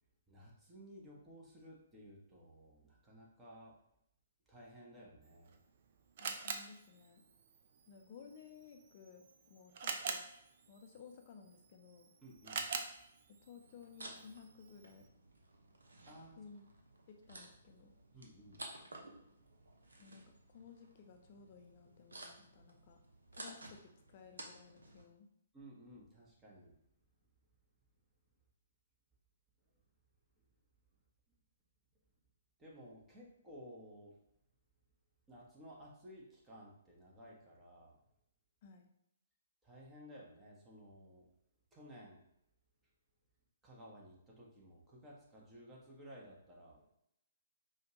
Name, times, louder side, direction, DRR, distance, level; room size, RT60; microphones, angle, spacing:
voice 1, 0.3-3.8 4.5-5.5 12.2-12.7 16.0-16.4 18.1-18.7 25.5-26.8 32.6-34.2 35.3-38.0 39.6-41.3 41.7-42.2 43.6-46.9, equal, 15° right, -4 dB, 1.0 m, -56 dB
Camera, 5.2-15.1, right 5 dB, 50° right, 0.5 m, -47 dB
voice 2, 6.2-7.2 7.9-10.2 10.7-12.1 13.4-15.1 16.4-16.6 17.1-17.9 20.0-23.0 23.3-25.3 38.6-38.9, left 6 dB, 40° left, 4 dB, 0.6 m, -57 dB
sound 1, 13.6-25.0, right 2 dB, 75° right, 0.8 m, -55 dB
5.0 x 2.4 x 2.9 m, 0.77 s
figure-of-eight pair, 130°, 0 cm